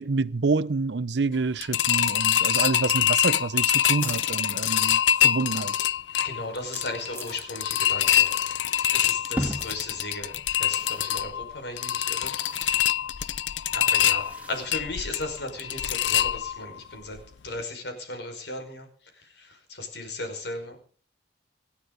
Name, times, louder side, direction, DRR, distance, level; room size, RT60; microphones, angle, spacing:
voice 1, 0.0-5.7, right 4 dB, 70° right, 0.6 m, -27 dB
sound 1, 1.6-16.8 17.1-17.2 17.6-17.7, left 10 dB, 85° left, 0.6 m, -25 dB
sound 2, 3.4-7.7 8.0-8.5 8.8-9.8 10.1-10.2 10.8-11.1, left 1 dB, 15° left, 3.8 m, -44 dB
voice 2, 6.2-8.4 8.8-12.4 13.7-17.2 17.4-18.9 19.1-20.8, left 2 dB, 70° left, 5.2 m, -36 dB
sound 3, 9.4-15.6, equal, 10° right, 2.5 m, -39 dB
27.0 x 9.8 x 4.0 m
head